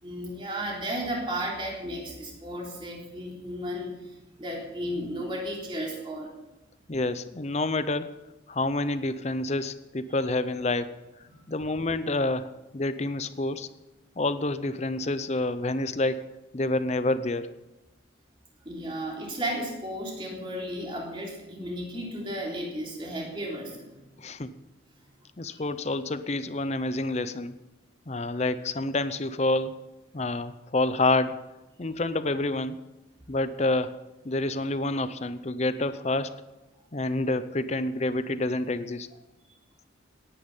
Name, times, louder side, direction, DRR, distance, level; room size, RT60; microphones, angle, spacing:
voice 1, 0.0-3.9 4.4-6.3 10.1-10.2 11.3-11.5 18.6-23.8 25.5-25.6, equal, 25° right, -2 dB, 3.6 m, -34 dB
voice 2, 6.9-8.1 8.5-10.9 11.5-13.7 14.2-16.3 16.5-17.5 24.2-24.5 25.4-27.5 28.1-29.8 30.1-31.4 31.8-32.8 33.3-33.9 34.2-36.4 36.9-39.1, left 2 dB, 35° left, 13 dB, 0.7 m, -28 dB
18.0 x 9.9 x 5.6 m, 1.0 s
head